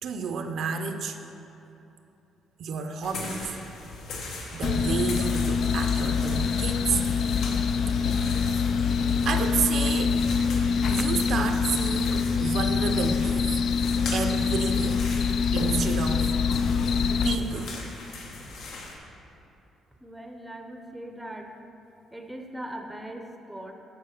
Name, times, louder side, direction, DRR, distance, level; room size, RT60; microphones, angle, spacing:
voice 1, 0.0-1.2 2.6-3.6 4.5-7.0 8.0-8.4 9.2-10.2 10.9-13.5 14.1-15.1 15.5-16.4 17.2-17.8, right 6 dB, 60° right, 6 dB, 0.6 m, -30 dB
sound 1, 3.0-19.0, left 2 dB, 80° left, 1.5 m, -39 dB
sound 2, 4.6-17.4, left 6 dB, 55° left, 0.3 m, -25 dB
voice 2, 20.0-21.5 22.1-23.7, right 1 dB, 5° right, 4 dB, 0.6 m, -40 dB
10.5 x 4.6 x 6.5 m, 3.0 s
cardioid pair, 145°, 0 cm